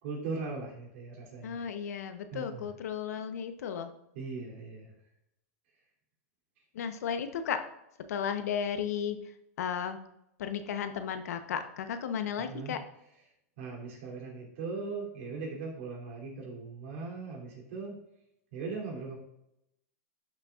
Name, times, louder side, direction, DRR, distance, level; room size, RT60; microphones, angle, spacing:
voice 1, 0.0-1.6 2.3-2.7 4.1-4.9 12.4-12.8 13.6-18.0 18.5-19.2, right 4 dB, 55° right, -1 dB, 3.1 m, -39 dB
voice 2, 1.4-3.9 6.7-7.6 8.1-9.2 9.6-10.0 10.4-12.8, left 7 dB, 80° left, 8 dB, 0.9 m, -34 dB
11.5 x 6.6 x 2.5 m, 0.82 s
supercardioid pair, 155°, 8 cm